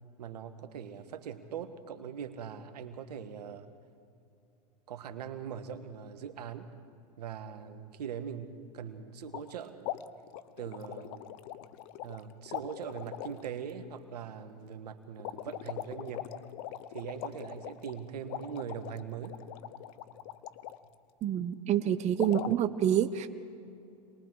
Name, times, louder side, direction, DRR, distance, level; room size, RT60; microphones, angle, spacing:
voice 1, 0.2-3.7 4.9-6.7 7.2-9.9 10.6-11.3 12.0-16.3 16.9-19.4, right 8 dB, 75° right, 9 dB, 1.5 m, -41 dB
sound 1, 9.3-9.5 9.8-12.2 12.5-13.5 15.2-20.8 22.2-22.6, left 13 dB, 55° left, 0.9 m, -41 dB
voice 2, 21.2-23.3, right 10 dB, 35° right, 9 dB, 0.9 m, -27 dB
27.5 x 21.0 x 4.8 m, 2.6 s
hypercardioid pair, 100°, 21 cm